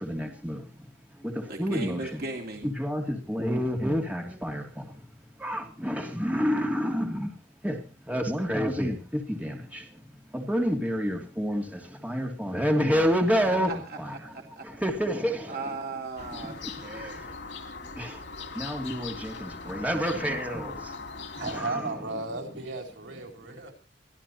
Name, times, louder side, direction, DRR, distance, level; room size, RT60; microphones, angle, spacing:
voice 1, 0.0-0.6 1.6-2.2 2.6-4.6 5.4-7.3 7.6-7.8 8.1-9.0 9.3-9.6 10.3-11.6 12.0-14.1 14.8-15.4 18.0-18.1 18.6-20.7 21.5-21.9, equal, 10° right, 2.8 m, -28 dB
voice 2, 1.5-2.7 13.3-14.9 15.5-17.2, right 3 dB, 55° right, 2.6 m, -37 dB
sound 1, 16.2-21.6, left 4 dB, 85° left, 2.7 m, -40 dB
voice 3, 21.3-23.7, right 3 dB, 90° right, 4.2 m, -35 dB
24.0 x 15.0 x 3.0 m
head